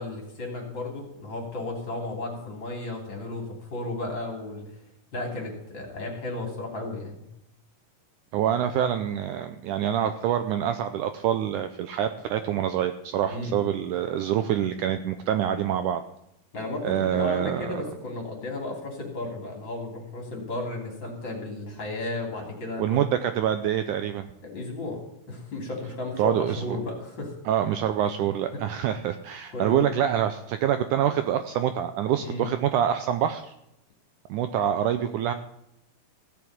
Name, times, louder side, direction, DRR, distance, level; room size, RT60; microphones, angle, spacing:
voice 1, 0.0-4.6 5.1-7.2 13.3-13.6 16.5-23.0 24.4-25.0 25.3-27.3 28.5-28.6 29.5-29.9 32.2-32.5, left 2 dB, 35° left, 1 dB, 3.5 m, -34 dB
voice 2, 8.3-16.0 16.8-17.8 22.8-24.3 26.2-26.8 27.5-33.5 34.3-35.3, right 10 dB, 75° right, 9 dB, 1.9 m, -26 dB
15.5 x 6.9 x 8.7 m, 0.82 s
omnidirectional pair, 4.1 m